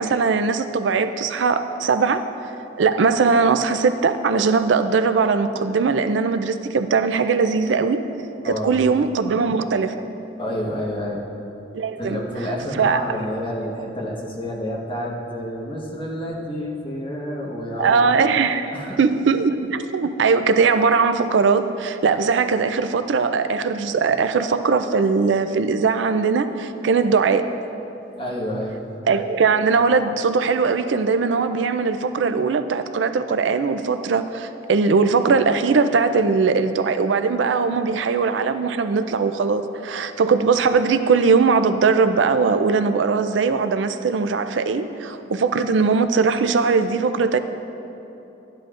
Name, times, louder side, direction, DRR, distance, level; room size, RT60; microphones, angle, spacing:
voice 1, 0.0-2.2 2.8-8.0 8.4-9.9 11.7-12.2 12.7-13.1 17.8-27.4 29.1-47.4, right 5 dB, 85° right, 10 dB, 0.4 m, -20 dB
voice 2, 8.4-8.8 10.4-11.3 12.0-18.1 18.7-19.0 28.1-28.8, equal, 30° left, -3 dB, 1.3 m, -29 dB
12.5 x 10.5 x 2.5 m, 2.9 s
head